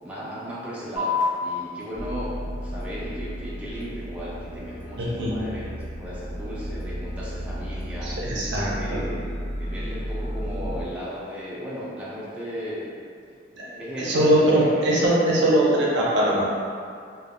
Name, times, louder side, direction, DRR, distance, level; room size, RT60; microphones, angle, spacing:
voice 1, 0.0-13.0 13.3-13.4 13.7-14.9, equal, 5° right, -9 dB, 0.4 m, -36 dB
sound 1, 1.0-8.0, left 4 dB, 75° left, 1.0 m, -35 dB
sound 2, 1.9-10.8, equal, 40° left, 0.6 m, -33 dB
voice 2, 5.0-5.4 8.0-9.0 13.6-13.7 14.0-16.4, right 1 dB, 70° right, -5 dB, 0.6 m, -21 dB
2.2 x 2.1 x 3.6 m, 2.3 s
head